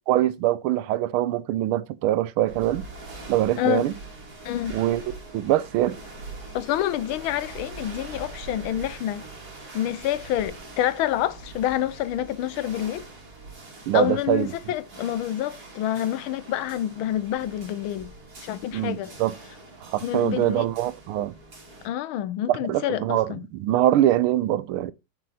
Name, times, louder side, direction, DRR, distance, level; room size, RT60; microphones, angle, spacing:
voice 1, 0.1-2.9 3.3-3.9 4.7-5.0 5.3-6.0 13.9-14.5 18.7-19.3 19.8-21.3 22.5-24.9, right 13 dB, 85° right, 1.5 m, -23 dB
sound 1, 2.5-21.9, right 3 dB, 45° right, 3.2 m, -43 dB
voice 2, 4.4-4.8 6.5-9.2 9.7-13.0 13.9-18.1 18.4-19.1 20.0-20.7 21.8-23.4, left 12 dB, 80° left, 1.5 m, -27 dB
8.2 x 6.8 x 4.1 m
omnidirectional pair, 2.3 m